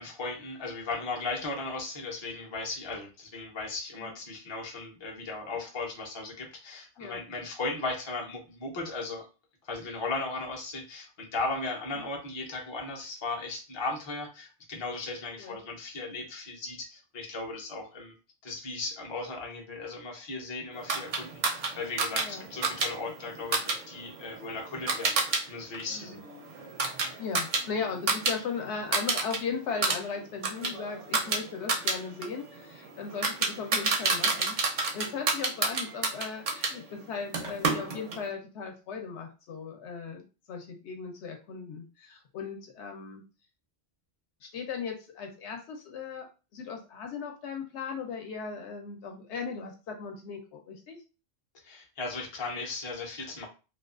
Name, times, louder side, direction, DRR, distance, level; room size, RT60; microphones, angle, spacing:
voice 1, 0.0-9.3 9.6-18.1 18.4-25.1 25.5-26.2 51.6-53.5, left 3 dB, 35° left, 0 dB, 0.4 m, -36 dB
sound 1, 20.9-25.4 25.7-28.4 28.6-29.4 29.7-36.7 37.3-38.2, right 4 dB, 55° right, 0.5 m, -30 dB
voice 2, 22.1-22.5 25.9-26.2 27.2-43.2 44.4-51.0, left 5 dB, 70° left, 3 dB, 0.8 m, -37 dB
2.4 x 2.3 x 2.3 m, 0.32 s
omnidirectional pair, 1.2 m